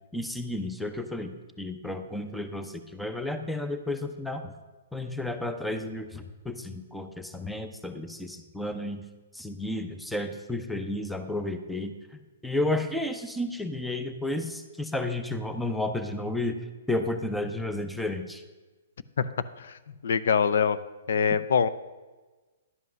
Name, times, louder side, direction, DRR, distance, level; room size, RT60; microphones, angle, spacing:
voice 1, 0.1-4.5 4.9-9.0 9.3-11.9 12.4-16.6 16.9-18.4, left 1 dB, ahead, 8 dB, 0.6 m, -32 dB
voice 2, 19.6-20.8 21.1-21.7, left 7 dB, 70° left, 14 dB, 0.5 m, -24 dB
11.0 x 5.5 x 6.2 m, 1.2 s
hypercardioid pair, 150°, 0 cm